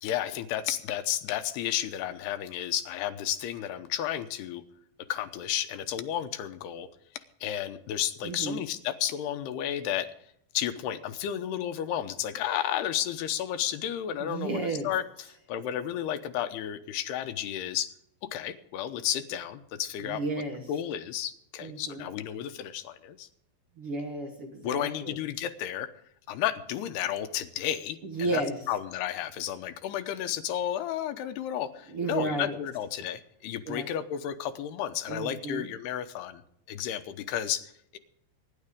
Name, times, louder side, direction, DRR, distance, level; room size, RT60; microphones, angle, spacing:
voice 1, 0.0-4.6 5.1-6.9 7.4-10.1 10.5-15.0 15.5-17.9 18.3-20.2 20.7-23.3 24.6-25.9 26.3-28.4 28.7-36.4 36.7-38.0, left 11 dB, 85° left, 8 dB, 2.9 m, -32 dB
voice 2, 8.2-8.7 14.2-14.9 20.0-20.6 21.6-22.1 23.8-25.2 28.0-28.5 31.9-32.6 33.7-33.9 35.1-35.7, right 3 dB, 55° right, 1 dB, 1.7 m, -33 dB
24.0 x 11.0 x 3.7 m, 0.72 s
omnidirectional pair, 4.7 m